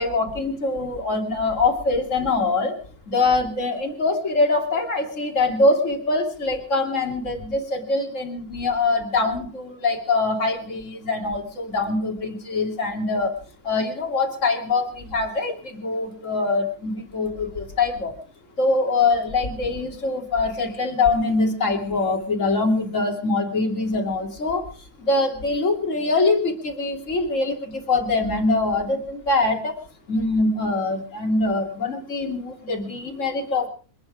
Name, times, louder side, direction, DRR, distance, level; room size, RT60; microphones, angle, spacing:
voice 1, 0.0-2.8 3.1-13.3 13.6-18.1 18.6-24.7 25.0-29.8 30.1-33.7, left 3 dB, 50° left, 2 dB, 3.2 m, -23 dB
27.5 x 9.5 x 4.9 m, 0.40 s
omnidirectional pair, 1.7 m